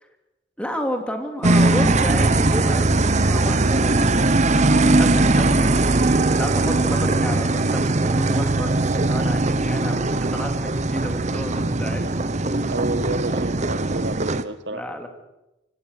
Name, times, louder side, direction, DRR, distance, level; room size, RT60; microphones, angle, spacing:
voice 1, 0.6-5.9 6.4-12.0 14.7-15.1, equal, 5° left, 4 dB, 3.0 m, -31 dB
sound 1, 1.4-14.4, right 2 dB, 40° right, 1.0 m, -20 dB
voice 2, 12.5-14.8, right 2 dB, 70° right, 11 dB, 1.8 m, -30 dB
24.0 x 18.0 x 6.7 m, 0.94 s
head